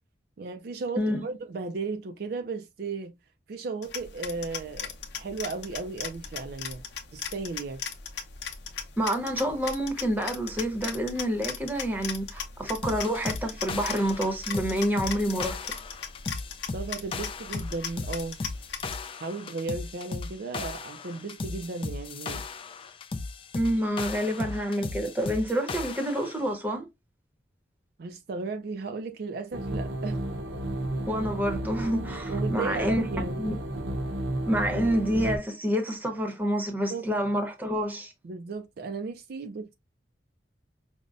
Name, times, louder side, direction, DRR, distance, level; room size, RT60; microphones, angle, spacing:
voice 1, 0.4-3.1 3.5-6.8 7.1-7.8 16.7-18.4 19.2-22.5 28.0-30.2 32.3-33.6 36.9-37.1 38.2-39.7, right 4 dB, 55° right, 0.4 m, -35 dB
voice 2, 1.0-1.3 9.0-15.6 23.5-26.9 31.1-33.0 33.4-33.5 34.5-38.1, equal, 10° right, 0.8 m, -28 dB
sound 1, 3.8-19.0, left 6 dB, 70° left, 0.7 m, -38 dB
sound 2, 12.8-26.4, left 3 dB, 30° left, 0.3 m, -36 dB
sound 3, 29.5-35.4, right 1 dB, 75° right, 0.8 m, -32 dB
5.2 x 2.1 x 2.4 m
head